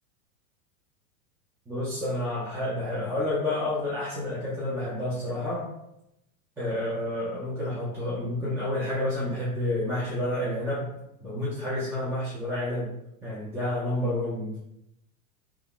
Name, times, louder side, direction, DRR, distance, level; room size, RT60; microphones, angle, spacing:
voice 1, 1.7-5.7 6.6-10.9 11.2-12.9 13.2-14.6, left 1 dB, 5° right, -8 dB, 0.5 m, -29 dB
3.4 x 2.3 x 2.3 m, 0.83 s
hypercardioid pair, 115°, 43 cm